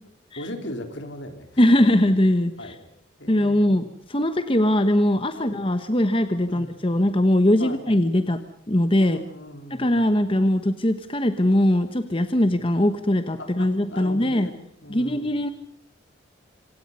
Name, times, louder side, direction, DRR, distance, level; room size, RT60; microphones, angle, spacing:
voice 1, 0.4-1.6 1.9-2.0 2.6-2.8 3.2-3.8 5.3-5.6 6.5-6.7 7.6-8.0 9.0-10.2 12.4-12.6 13.4-14.6 14.8-15.4, left 1 dB, 65° left, 6 dB, 3.8 m, -38 dB
voice 2, 1.6-2.8 3.3-8.4 8.7-9.2 9.7-14.5 14.9-15.5, left 1 dB, 25° left, 9 dB, 1.1 m, -21 dB
26.5 x 26.5 x 5.5 m, 0.68 s
head